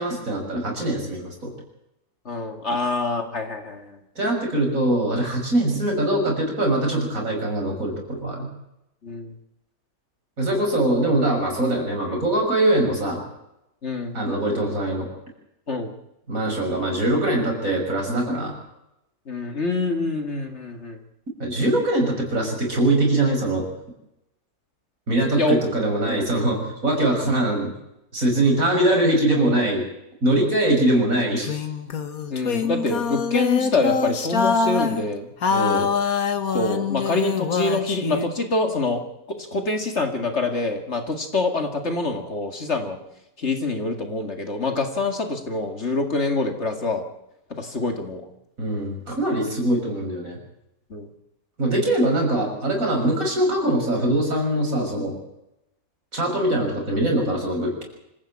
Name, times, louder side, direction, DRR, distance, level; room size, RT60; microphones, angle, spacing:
voice 1, 0.0-1.5 4.1-8.5 10.4-13.2 14.1-15.1 16.3-18.5 21.4-23.7 25.1-27.7 28.1-29.8 30.2-31.5 35.5-35.9 48.6-50.4 51.6-55.1 56.1-57.8, right 1 dB, 60° right, 1 dB, 6.8 m, -22 dB
voice 2, 2.3-4.0 9.0-9.3 13.8-14.2 15.7-15.9 19.3-21.0 25.4-25.6 32.3-35.3 36.5-39.0 39.3-43.0 43.4-47.0 47.5-48.3 50.9-51.1, left 3 dB, 45° left, 5 dB, 2.4 m, -25 dB
sound 1, 31.4-35.0 35.4-38.3, left 5 dB, 70° left, 2.0 m, -24 dB
26.0 x 15.0 x 8.7 m, 0.86 s
omnidirectional pair, 1.6 m